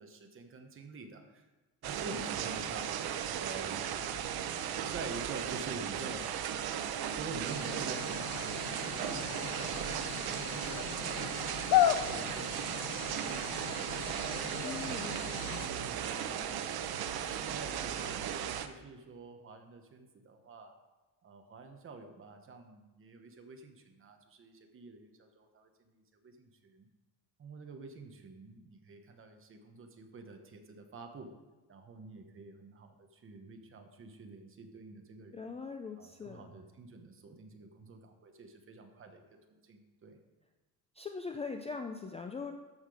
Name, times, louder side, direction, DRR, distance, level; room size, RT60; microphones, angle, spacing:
voice 1, 0.0-1.5 1.8-3.0 3.3-3.9 4.9-6.3 7.2-9.7 10.0-11.4 11.9-12.8 13.1-14.2 14.8-16.6 17.1-20.7 21.2-26.9 27.4-31.3 31.7-35.5 36.0-39.2 39.6-40.2, right 3 dB, 35° right, 5 dB, 1.1 m, -48 dB
sound 1, 1.8-18.7, right 9 dB, 75° right, 0.8 m, -36 dB
sound 2, 7.5-15.7, left 12 dB, 70° left, 0.6 m, -35 dB
voice 2, 14.6-15.1 35.3-36.5 41.0-42.5, left 4 dB, 20° left, 5 dB, 0.4 m, -41 dB
13.5 x 5.8 x 4.9 m, 1.2 s
cardioid pair, 180°, 37 cm